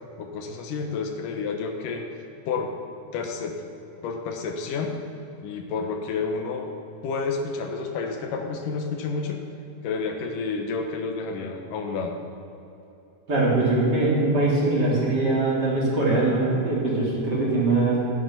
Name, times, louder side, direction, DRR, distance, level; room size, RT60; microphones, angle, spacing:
voice 1, 0.2-2.1 2.5-2.7 3.1-3.6 4.0-5.0 5.4-6.7 7.0-9.4 9.8-12.2, left 4 dB, 85° left, 4 dB, 2.7 m, -30 dB
voice 2, 13.3-18.0, right 2 dB, 30° right, -6 dB, 3.3 m, -22 dB
14.5 x 9.7 x 5.9 m, 2.9 s
omnidirectional pair, 3.8 m